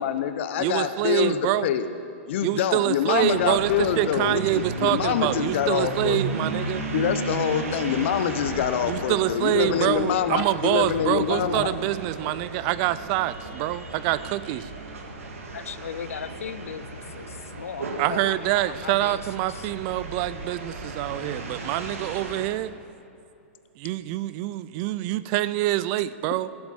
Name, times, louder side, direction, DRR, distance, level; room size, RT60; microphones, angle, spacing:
voice 1, 0.0-1.8 2.3-6.2 6.9-11.7, left 9 dB, 60° left, 10 dB, 0.9 m, -25 dB
voice 2, 0.6-1.7 2.4-6.8 8.9-14.7 18.0-22.7 23.8-26.5, right 15 dB, 40° right, 16 dB, 0.4 m, -26 dB
sound 1, 3.1-22.5, right 3 dB, 85° right, 1.8 m, -34 dB
voice 3, 15.5-19.2 19.5-19.7, left 7 dB, 85° left, 15 dB, 0.5 m, -37 dB
15.0 x 7.8 x 7.2 m, 2.7 s
hypercardioid pair, 130°, 7 cm